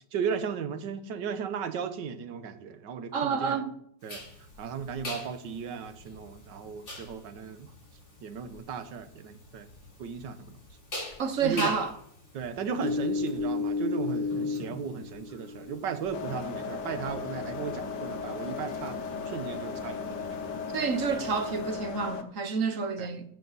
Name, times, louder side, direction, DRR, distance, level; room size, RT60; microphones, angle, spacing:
voice 1, 0.1-3.6 4.0-4.2 4.6-7.7 8.2-9.7 10.0-10.5 11.4-11.7 12.3-19.0 19.2-20.3 23.0-23.2, right 6 dB, 75° right, 1.6 m, -36 dB
voice 2, 3.1-3.7 11.2-11.9 20.7-23.2, right 5 dB, 50° right, 1.1 m, -29 dB
sound 1, 4.1-21.7, left 3 dB, 40° left, 4.2 m, -37 dB
sound 2, 16.1-22.2, left 5 dB, 65° left, 1.5 m, -36 dB
16.0 x 7.3 x 4.1 m
omnidirectional pair, 2.0 m